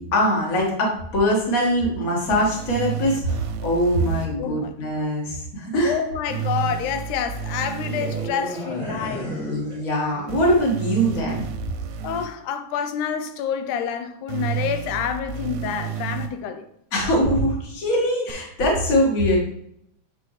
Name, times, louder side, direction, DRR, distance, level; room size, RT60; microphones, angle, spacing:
voice 1, 0.0-5.9 9.5-11.4 16.9-19.4, equal, 35° left, 1.5 m, -22 dB
sound 1, 2.3-4.3 6.3-8.3 10.3-12.3 14.3-16.3 18.3-18.4, right 8 dB, 80° right, 2.0 m, -31 dB
voice 2, 4.4-4.7 5.8-9.4 12.0-16.7, left 8 dB, 85° left, 2.1 m, -28 dB
sound 2, 7.8-10.5 10.8-11.1, equal, 5° right, 1.9 m, -33 dB
7.6 x 4.3 x 3.2 m
omnidirectional pair, 3.6 m